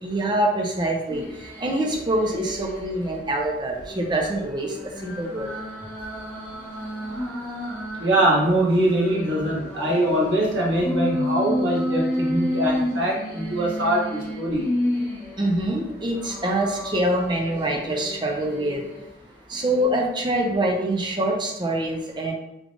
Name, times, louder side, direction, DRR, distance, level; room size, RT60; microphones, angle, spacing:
voice 1, 0.0-1.2 1.6-4.7 5.0-5.5 15.4-18.8 19.5-22.3, right 1 dB, 25° right, 1 dB, 0.5 m, -25 dB
sound 1, 1.1-3.2 3.6-8.1 8.6-15.6 16.1-19.0 19.5-19.8, equal, 10° left, 1.0 m, -31 dB
voice 2, 8.0-14.7, right 1 dB, 80° right, -5 dB, 1.3 m, -22 dB
3.6 x 3.3 x 2.5 m, 0.88 s
head